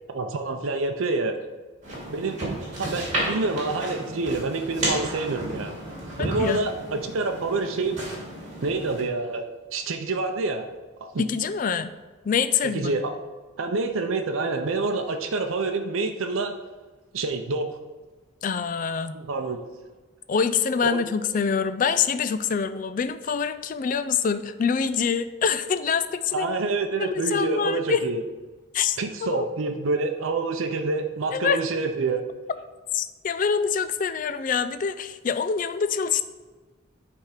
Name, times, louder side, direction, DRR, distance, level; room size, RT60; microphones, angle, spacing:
voice 1, 0.1-1.4 2.1-5.7 6.2-8.0 8.6-9.4 9.7-10.7 11.0-11.2 12.7-13.1 13.6-16.6 17.1-17.7 19.1-19.6 20.8-21.0 26.3-28.2 29.0-32.3, right 3 dB, 85° right, 5 dB, 0.6 m, -27 dB
sound 1, 1.8-9.0, right 1 dB, 35° right, 2.4 m, -32 dB
voice 2, 6.2-6.7 11.2-11.9 12.2-12.9 18.4-19.2 20.3-26.5 27.0-28.1 28.7-29.5 31.3-31.6 32.9-36.2, left 6 dB, 40° left, 12 dB, 0.3 m, -25 dB
9.0 x 3.5 x 4.9 m, 1.3 s
head